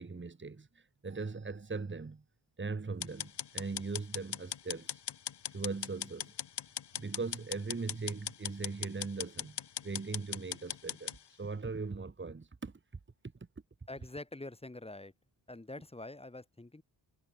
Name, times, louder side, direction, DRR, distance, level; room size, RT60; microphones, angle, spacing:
voice 1, 0.0-2.2 2.6-5.0 5.5-6.3 6.9-12.7, right 4 dB, 25° right, 2.8 m, -40 dB
sound 1, 3.0-11.2, left 9 dB, 60° left, 1.9 m, -39 dB
voice 2, 13.9-15.1 15.5-16.8, left 2 dB, 15° left, 2.5 m, -45 dB
wide cardioid pair, 165°, 46 cm